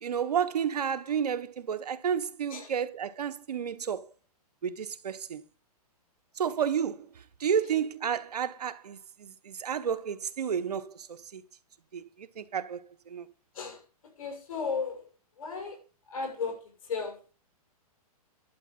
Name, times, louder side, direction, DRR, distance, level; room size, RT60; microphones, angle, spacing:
voice 1, 0.0-4.1 4.6-5.4 6.4-11.4 11.9-13.3, right 8 dB, 90° right, 1.2 m, -31 dB
voice 2, 14.2-15.1 15.4-15.8 16.1-17.3, left 5 dB, 65° left, 6.2 m, -35 dB
11.5 x 8.3 x 5.4 m
hypercardioid pair, 140°, 20 cm